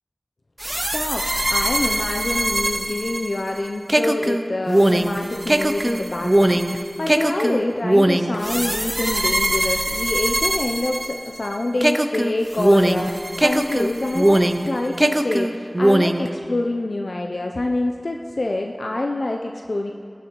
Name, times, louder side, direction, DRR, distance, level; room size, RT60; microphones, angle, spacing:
sound 1, 0.6-11.5 11.8-14.7 15.0-16.3, right 1 dB, 30° right, 0.4 m, -21 dB
voice 1, 0.9-1.2 1.5-19.9, left 2 dB, 80° left, 2 dB, 0.4 m, -26 dB
16.0 x 6.2 x 3.0 m, 2.5 s
wide cardioid pair, 40°, 0 cm